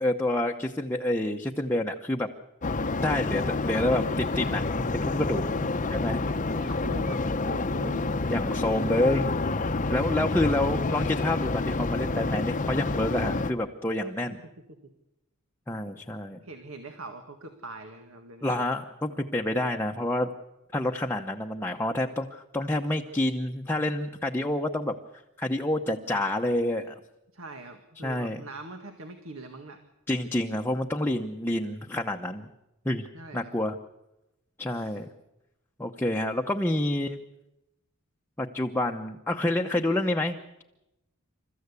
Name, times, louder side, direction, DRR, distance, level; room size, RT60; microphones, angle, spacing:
voice 1, 0.0-2.3 3.0-5.5 5.9-6.2 8.1-9.3 9.9-14.4 15.7-16.4 18.4-20.3 20.7-24.9 25.4-27.0 28.0-28.4 30.1-32.5 32.8-33.1 33.3-33.8 34.6-35.1 35.8-37.2 38.4-40.6, left 1 dB, 10° left, 2 dB, 0.9 m, -28 dB
sound 1, 2.6-13.5, left 3 dB, 35° left, 0.8 m, -28 dB
voice 2, 6.2-8.1 16.4-18.6 27.3-29.8 33.1-33.6 34.7-35.0, right 2 dB, 70° right, 6 dB, 1.9 m, -42 dB
28.5 x 14.5 x 8.3 m, 0.93 s
head